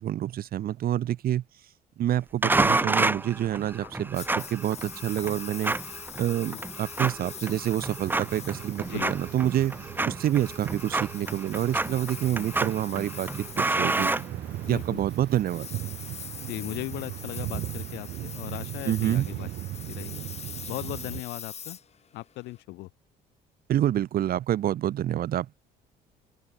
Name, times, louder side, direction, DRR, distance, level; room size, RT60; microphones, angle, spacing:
voice 1, 0.0-1.4 2.0-5.8 6.2-9.7 10.0-13.3 13.6-14.1 14.7-15.7 18.9-19.3 23.7-25.6, right 12 dB, 60° right, 2.6 m, -27 dB
sound 1, 2.4-14.9, right 2 dB, 10° right, 1.0 m, -30 dB
Engine, 4.1-22.6, left 7 dB, 40° left, 2.9 m, -43 dB
sound 2, 8.0-21.2, right 15 dB, 75° right, 6.4 m, -39 dB
voice 2, 14.7-15.0 16.5-19.5 19.9-20.2 20.7-21.8 22.1-22.9, left 20 dB, 90° left, 5.0 m, -37 dB
cardioid pair, 110°, 17 cm